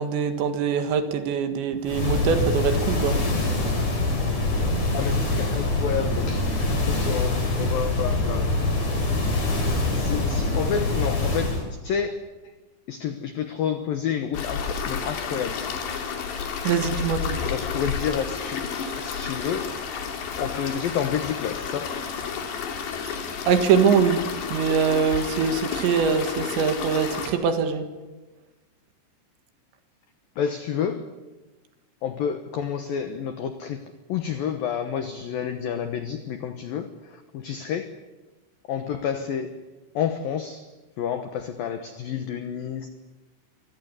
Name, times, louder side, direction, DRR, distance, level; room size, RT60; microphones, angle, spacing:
voice 1, 0.0-3.2 16.7-17.4 23.5-24.2 24.5-27.8, right 6 dB, 65° right, 8 dB, 3.6 m, -23 dB
sound 1, 1.9-11.7, left 2 dB, 35° left, 5.4 m, -24 dB
voice 2, 4.9-6.5 6.9-8.8 9.8-12.1 12.9-15.6 17.4-18.6 19.0-19.7 20.4-21.9 26.5-27.0 30.4-31.1 32.0-33.8 34.1-37.9 38.7-39.5 39.9-40.6 41.0-42.9, left 8 dB, 85° left, 9 dB, 2.0 m, -29 dB
sound 2, 14.3-27.3, left 6 dB, 55° left, 4.4 m, -31 dB
24.5 x 18.5 x 9.8 m, 1.2 s
omnidirectional pair, 6.0 m